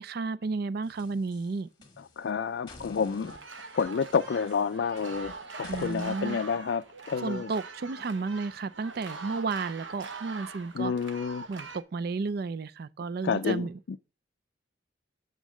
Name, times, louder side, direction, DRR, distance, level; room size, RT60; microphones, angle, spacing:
voice 1, 0.0-1.7 5.7-6.4 7.2-10.9 11.5-13.8, right 4 dB, 55° right, 0.4 m, -32 dB
sound 1, 0.8-2.3 2.7-6.2, left 2 dB, 25° left, 1.6 m, -50 dB
voice 2, 2.0-3.3 3.7-7.5 10.7-11.5 13.2-14.0, left 6 dB, 65° left, 0.4 m, -29 dB
sound 2, 3.2-11.8, right 4 dB, 75° right, 1.0 m, -43 dB
8.3 x 3.9 x 6.1 m
head